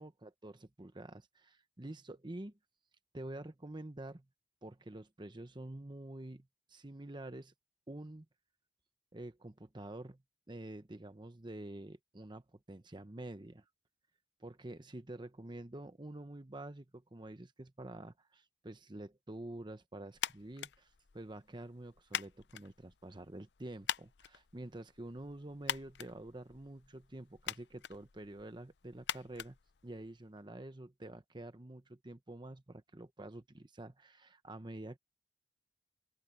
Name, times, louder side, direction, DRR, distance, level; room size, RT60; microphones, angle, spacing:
voice 1, 0.0-2.5 3.1-4.2 4.6-7.5 7.9-8.3 9.1-10.2 10.5-13.6 14.4-29.6 29.8-35.0, right 1 dB, 25° right, 1.0 m, -48 dB
sound 1, 20.1-30.4, left 9 dB, 70° left, 0.6 m, -45 dB
open air
head